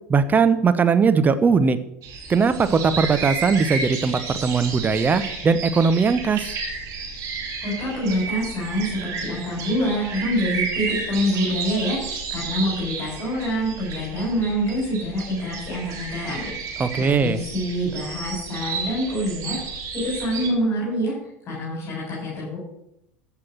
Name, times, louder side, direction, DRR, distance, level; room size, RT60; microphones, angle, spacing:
voice 1, 0.1-1.8 2.3-6.5 16.8-17.4, right 5 dB, 25° right, 11 dB, 0.9 m, -19 dB
sound 1, 2.0-20.5, right 4 dB, 45° right, 3.1 m, -32 dB
voice 2, 7.6-22.6, equal, 35° left, -5 dB, 5.3 m, -26 dB
14.0 x 5.9 x 6.1 m, 0.81 s
figure-of-eight pair, 75°, 8 cm